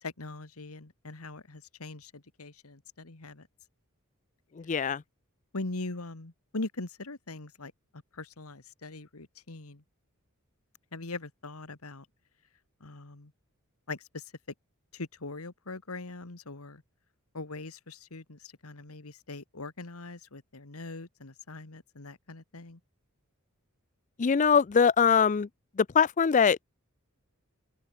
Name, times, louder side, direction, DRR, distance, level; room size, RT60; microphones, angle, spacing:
voice 1, 0.0-3.5 5.5-9.8 10.9-12.1 12.8-13.3 13.9-14.3 14.9-16.8 17.3-22.8, left 2 dB, 85° left, 1.8 m, -41 dB
voice 2, 4.5-5.0 24.2-25.5 25.8-26.7, left 6 dB, 35° left, 0.4 m, -23 dB
open air
head